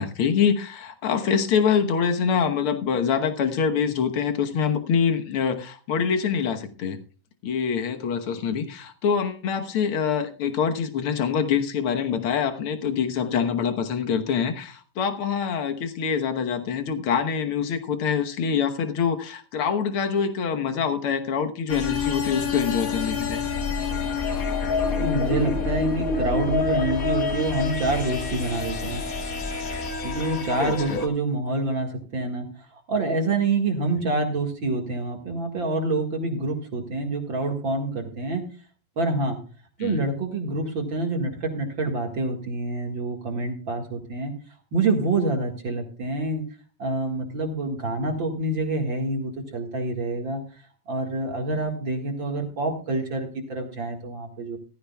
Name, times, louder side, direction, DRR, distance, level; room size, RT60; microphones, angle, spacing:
voice 1, 0.0-7.0 7.4-23.4 30.6-31.0 39.8-40.0, left 7 dB, 60° left, 7 dB, 1.5 m, -25 dB
sound 1, 21.7-31.1, left 4 dB, 85° left, 0.7 m, -27 dB
voice 2, 25.0-29.0 30.0-38.4 39.0-39.4 39.8-44.3 44.7-46.4 46.8-50.4 50.9-54.6, right 2 dB, 40° right, 3 dB, 2.1 m, -27 dB
16.0 x 14.5 x 2.3 m, 0.37 s
omnidirectional pair, 3.9 m